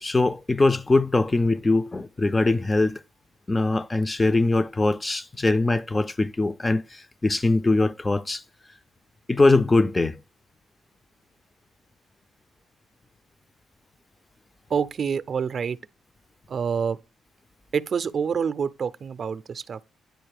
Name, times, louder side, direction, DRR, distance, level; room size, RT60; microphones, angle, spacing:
voice 1, 0.0-3.0 3.5-8.4 9.3-10.2, left 2 dB, 20° left, 0.3 m, -22 dB
voice 2, 14.7-15.8 16.5-17.0 17.7-19.8, right 6 dB, 50° right, 0.4 m, -27 dB
9.4 x 4.2 x 3.4 m
cardioid pair, 90°, 0 cm